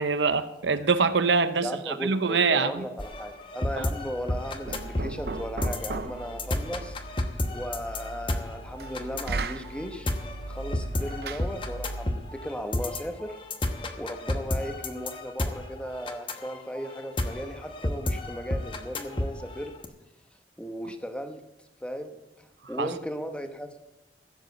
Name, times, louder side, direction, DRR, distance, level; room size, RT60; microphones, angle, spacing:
voice 1, 0.0-2.8 3.8-3.9 22.8-22.9, right 4 dB, 85° right, 0.9 m, -24 dB
voice 2, 1.6-7.0 7.5-10.1 10.4-13.4 14.0-19.7 20.6-21.4 21.8-23.8, equal, 5° left, 1.1 m, -36 dB
sound 1, 3.0-19.9, left 1 dB, 30° left, 1.1 m, -32 dB
Knock, 4.3-12.2, right 3 dB, 60° right, 0.6 m, -37 dB
15.5 x 7.7 x 8.0 m
head